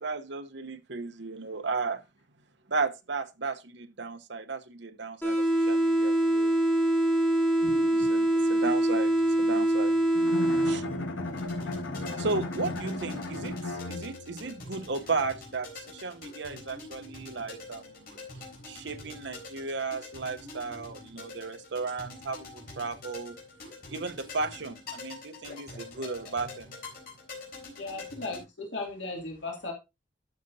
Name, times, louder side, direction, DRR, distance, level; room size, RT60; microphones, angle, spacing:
voice 1, 0.0-2.0 2.7-6.6 7.9-10.0 10.6-10.9 12.2-18.1 18.7-23.4 23.9-26.7, right 4 dB, 65° right, 0.9 m, -35 dB
sound 1, 5.2-11.2, right 1 dB, 10° left, 3.7 m, -24 dB
Bowed string instrument, 10.1-14.5, left 2 dB, 90° left, 1.4 m, -35 dB
sound 2, 11.3-28.4, left 3 dB, 50° left, 3.9 m, -46 dB
voice 2, 27.8-29.7, left 2 dB, 70° left, 2.6 m, -36 dB
12.5 x 6.7 x 2.7 m
head